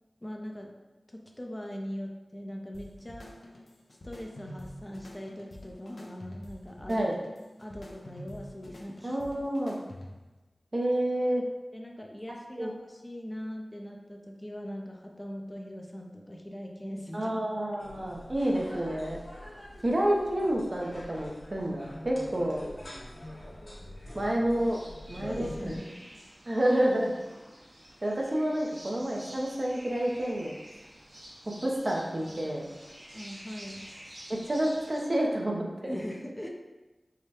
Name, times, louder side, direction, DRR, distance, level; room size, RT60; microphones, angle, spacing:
voice 1, 0.2-0.7 1.1-3.3 4.0-7.1 7.6-9.2 11.7-17.3 17.7-17.9 25.2-26.2 33.1-33.9 35.8-36.5, equal, 20° left, 1 dB, 0.5 m, -41 dB
sound 1, 2.7-10.4, left 1 dB, 70° left, 0.5 m, -47 dB
voice 2, 9.0-9.8 10.7-11.4 12.6-12.7 17.1-19.2 19.8-22.6 24.1-24.8 25.1-25.7 26.5-27.1 28.0-30.6 31.6-32.7 34.3-35.9, right 1 dB, 45° right, -1 dB, 0.6 m, -29 dB
sound 2, 17.8-25.8, left 1 dB, 50° left, 0.9 m, -45 dB
sound 3, 24.6-35.0, equal, 75° right, 1.3 m, -49 dB
4.8 x 2.2 x 2.9 m, 1.2 s
wide cardioid pair, 55°, 0 cm